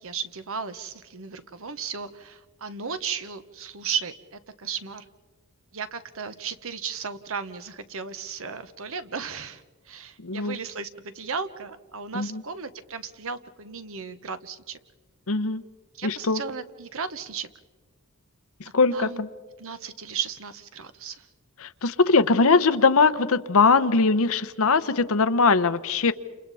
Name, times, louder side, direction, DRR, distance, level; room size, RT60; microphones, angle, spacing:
voice 1, 0.0-5.1 5.7-14.8 15.9-17.5 18.9-19.2 19.6-21.3, right 6 dB, 65° right, 11 dB, 1.1 m, -35 dB
voice 2, 10.2-10.6 12.1-12.4 15.3-15.6 16.0-16.4 18.7-19.3 21.6-26.1, left 4 dB, 65° left, 13 dB, 0.9 m, -21 dB
29.5 x 28.0 x 4.2 m, 1.3 s
head